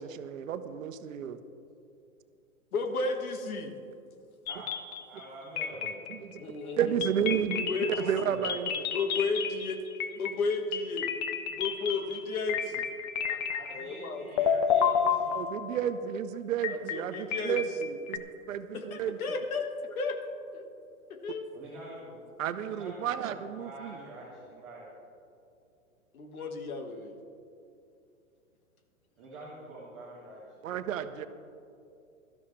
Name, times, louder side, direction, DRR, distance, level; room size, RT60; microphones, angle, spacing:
voice 1, 0.0-1.4 5.8-6.4 6.8-7.7 8.0-8.7 15.3-19.2 22.4-24.0 30.6-31.3, right 9 dB, 65° right, 10 dB, 0.9 m, -32 dB
voice 2, 2.7-3.8 6.4-7.1 7.5-8.1 8.9-9.8 10.2-11.1 11.5-12.9 13.3-13.4 13.7-14.4 16.7-17.6 18.7-20.2 20.5-20.7 21.1-21.5 22.0-22.1 26.1-27.1, left 4 dB, 80° left, 6 dB, 1.7 m, -33 dB
sound 1, 4.5-5.3 5.6-6.4 7.0-14.1 14.4-15.9 16.6-18.2, left 7 dB, 30° left, 0.7 m, -31 dB
voice 3, 5.1-5.9 7.8-8.7 11.8-11.9 13.5-15.4 21.5-22.2 22.6-24.9 29.2-30.6, right 2 dB, 5° right, -10 dB, 0.3 m, -46 dB
17.0 x 13.0 x 3.2 m, 2.6 s
hypercardioid pair, 140°, 43 cm